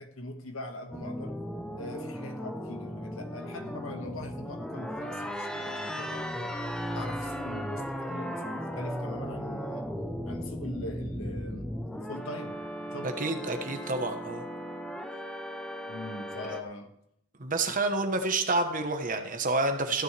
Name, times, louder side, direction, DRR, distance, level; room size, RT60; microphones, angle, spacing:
voice 1, 0.0-1.3 1.8-6.5 6.9-9.9 10.3-13.1 15.9-16.9, left 1 dB, 80° left, 4 dB, 1.8 m, -42 dB
sound 1, 0.9-16.6, equal, 5° left, 0.9 m, -36 dB
voice 2, 13.0-14.4 17.4-20.0, right 2 dB, 40° right, 6 dB, 1.2 m, -29 dB
15.0 x 9.8 x 3.4 m, 0.75 s
head